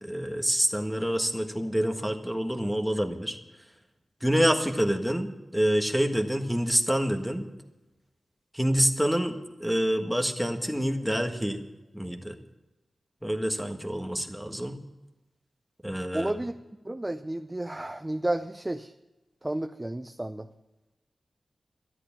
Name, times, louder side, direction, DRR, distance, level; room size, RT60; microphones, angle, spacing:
voice 1, 0.0-3.4 4.2-7.5 8.5-11.6 11.9-12.4 13.2-14.8 15.8-16.3, equal, ahead, 4 dB, 1.5 m, -27 dB
voice 2, 16.1-16.5 16.8-18.9 19.4-20.5, right 1 dB, 15° right, 8 dB, 0.5 m, -31 dB
13.0 x 11.0 x 7.1 m, 1.1 s
wide cardioid pair, 105°, 0 cm